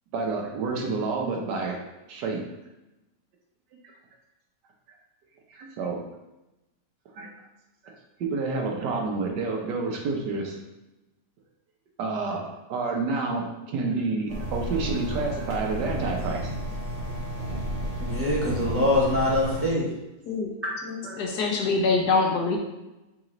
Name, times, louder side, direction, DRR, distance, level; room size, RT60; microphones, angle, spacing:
voice 1, 0.1-1.8 2.1-2.4 5.5-6.0 7.1-7.3 8.2-10.6 12.0-12.4 12.7-16.5 21.0-21.2, right 3 dB, 85° right, 1 dB, 1.4 m, -29 dB
sound 1, 14.3-19.7, right 1 dB, 50° right, 0.4 m, -32 dB
voice 2, 18.0-19.9 20.6-21.0, left 1 dB, 10° right, -6 dB, 0.7 m, -24 dB
voice 3, 21.1-22.6, left 4 dB, 75° left, 0 dB, 1.3 m, -24 dB
4.1 x 3.0 x 3.8 m, 0.96 s
omnidirectional pair, 1.8 m